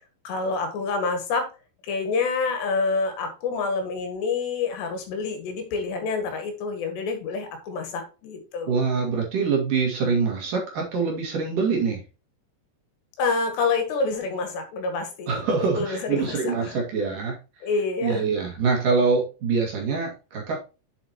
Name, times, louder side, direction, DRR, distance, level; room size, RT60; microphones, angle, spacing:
voice 1, 0.3-1.5 1.9-8.8 13.2-16.8 17.6-18.2, left 4 dB, 80° left, 6 dB, 3.8 m, -27 dB
voice 2, 8.7-12.0 15.3-17.4 18.0-20.7, right 5 dB, 55° right, 0 dB, 3.2 m, -24 dB
7.9 x 7.6 x 2.9 m, 0.31 s
omnidirectional pair, 5.0 m